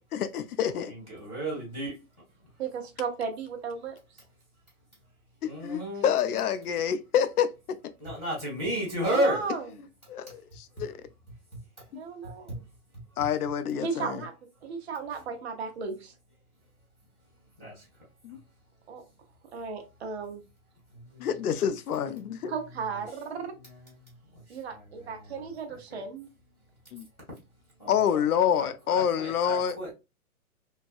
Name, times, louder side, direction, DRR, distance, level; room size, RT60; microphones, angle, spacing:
voice 1, 0.0-0.9 5.4-7.5 10.1-11.0 11.9-12.0 13.2-14.2 18.2-18.4 21.2-22.5 26.9-27.1 27.9-29.8, left 8 dB, 85° left, 0.6 m, -27 dB
voice 2, 0.9-1.9 5.4-6.1 8.0-9.4 11.5-11.8 12.2-12.6 12.9-13.0 17.6-17.9 18.3-18.4 20.9-21.3 22.9-23.0 23.6-26.0 27.8-29.9, right 1 dB, ahead, 0.5 m, -34 dB
voice 3, 2.6-4.0 9.1-9.6 12.0-12.6 13.8-14.3 14.6-16.1 18.9-19.0 19.5-20.4 22.5-23.5 24.5-26.3, right 5 dB, 45° right, 0.8 m, -35 dB
3.2 x 2.1 x 2.4 m
hypercardioid pair, 170°, 44 cm